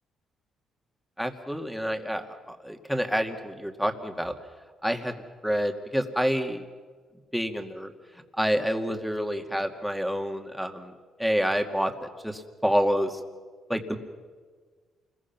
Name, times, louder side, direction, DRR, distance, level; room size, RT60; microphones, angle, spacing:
voice 1, 1.2-4.3 4.8-5.1 5.4-6.6 7.3-7.9 8.4-10.9 11.2-13.2 13.7-14.0, equal, ahead, 4 dB, 2.3 m, -28 dB
28.5 x 21.5 x 6.1 m, 1.5 s
cardioid pair, 90°, 0 cm